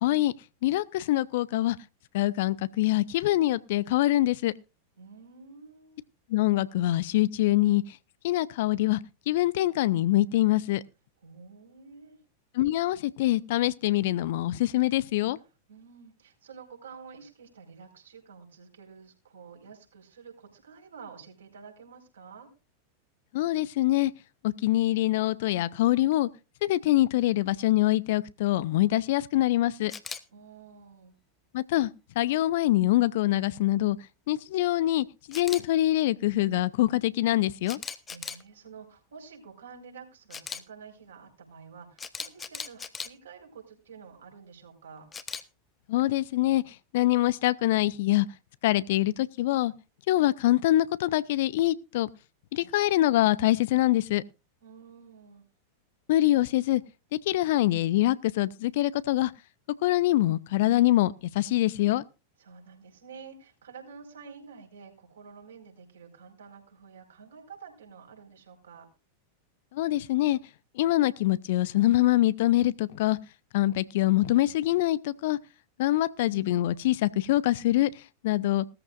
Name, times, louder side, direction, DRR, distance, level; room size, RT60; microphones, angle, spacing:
voice 1, 0.0-0.3 0.6-1.8 2.1-4.5 6.3-8.0 8.2-9.0 9.3-10.8 12.5-15.4 23.3-24.1 24.4-26.3 26.6-29.9 31.5-31.9 32.2-34.0 34.3-37.8 45.9-48.3 48.6-49.7 50.1-52.1 52.5-54.2 56.1-56.8 57.1-59.3 59.8-62.0 69.7-70.4 70.8-73.2 73.5-75.4 75.8-78.6, left 15 dB, 55° left, 0.6 m, -24 dB
voice 2, 5.0-6.0 11.2-12.2 15.7-22.5 30.3-31.2 38.1-45.1 54.6-55.4 62.4-68.9, right 5 dB, 65° right, 4.8 m, -49 dB
Camera, 29.9-30.2 35.3-35.6 37.7-38.4 40.3-40.6 42.0-43.1 45.1-45.4, left 6 dB, 20° left, 1.1 m, -37 dB
18.5 x 14.0 x 2.5 m
figure-of-eight pair, 90°, 0 cm